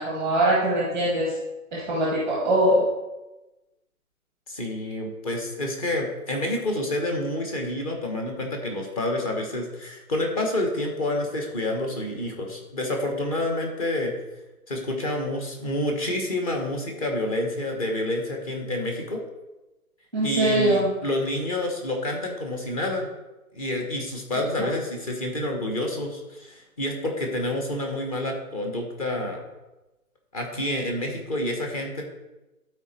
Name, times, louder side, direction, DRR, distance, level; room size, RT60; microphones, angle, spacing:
voice 1, 0.0-1.3 1.7-2.9 20.1-20.9 24.6-24.7, right 1 dB, 5° left, -6 dB, 1.0 m, -22 dB
voice 2, 4.5-14.1 14.7-19.2 20.2-23.1 23.5-29.4 30.3-32.0, left 1 dB, 25° left, 2 dB, 1.2 m, -28 dB
12.0 x 4.4 x 4.4 m, 1.0 s
hypercardioid pair, 160°, 44 cm